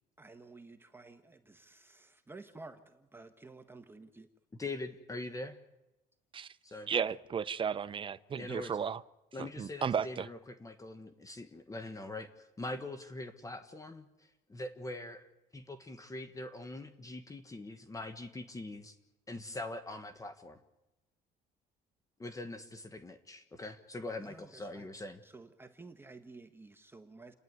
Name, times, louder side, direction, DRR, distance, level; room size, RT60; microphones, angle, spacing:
voice 1, 0.2-4.3 24.2-27.3, right 3 dB, 15° right, 1.3 m, -53 dB
voice 2, 4.6-5.6 6.6-6.9 8.4-8.8 9.3-15.3 15.5-18.9 19.3-20.6 22.2-25.2, left 2 dB, 20° left, 1.3 m, -43 dB
voice 3, 6.9-9.0 9.4-10.3, right 7 dB, 30° right, 0.7 m, -34 dB
29.5 x 10.5 x 9.6 m
cardioid pair, 110°, 17 cm